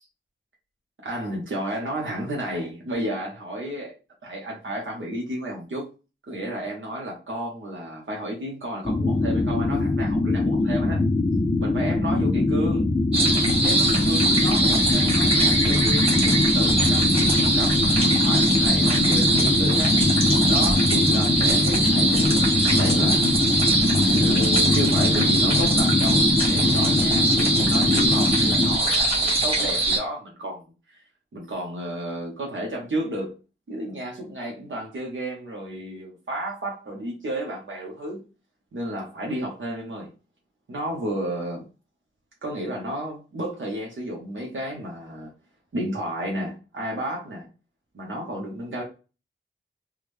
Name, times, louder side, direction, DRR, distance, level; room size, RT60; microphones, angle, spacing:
voice 1, 1.0-3.9 4.2-5.8 6.3-11.0 11.6-12.9 13.6-20.0 20.4-23.2 24.0-31.0 31.3-33.4 33.7-38.2 38.7-40.1 40.7-41.6 42.4-45.3 45.7-47.5 47.9-48.8, right 1 dB, 70° right, 0.8 m, -32 dB
sound 1, 8.8-28.8, left 2 dB, 20° left, 0.3 m, -22 dB
sound 2, 13.1-30.0, right 2 dB, 30° right, 1.4 m, -22 dB
3.5 x 2.1 x 3.1 m
wide cardioid pair, 85°, 21 cm